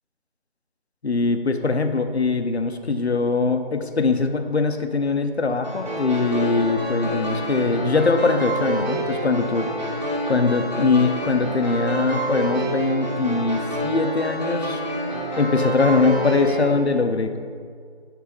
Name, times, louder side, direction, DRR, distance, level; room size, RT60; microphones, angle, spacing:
voice 1, 1.0-9.7 10.3-14.8 15.4-17.4, left 4 dB, 75° left, 7 dB, 0.8 m, -22 dB
sound 1, 5.6-16.7, right 1 dB, 40° right, 1.8 m, -27 dB
7.3 x 4.0 x 5.3 m, 2.1 s
figure-of-eight pair, 180°, 32 cm